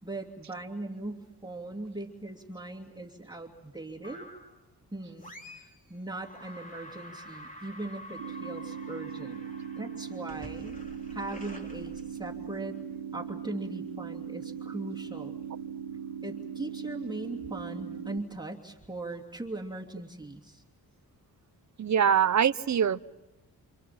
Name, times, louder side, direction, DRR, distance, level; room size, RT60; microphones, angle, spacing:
voice 1, 0.0-4.3 4.9-9.4 9.8-10.8 11.1-12.8 13.1-15.3 16.2-20.6, right 2 dB, 10° right, -1 dB, 2.7 m, -39 dB
sound 1, 4.0-4.6 5.2-5.8 6.1-12.6, left 1 dB, 20° left, 3.6 m, -48 dB
sound 2, 8.2-18.2, right 8 dB, 70° right, 1.1 m, -39 dB
voice 2, 21.8-23.0, right 8 dB, 45° right, 15 dB, 0.8 m, -23 dB
28.0 x 27.5 x 6.0 m, 1.0 s
cardioid pair, 80°, 39 cm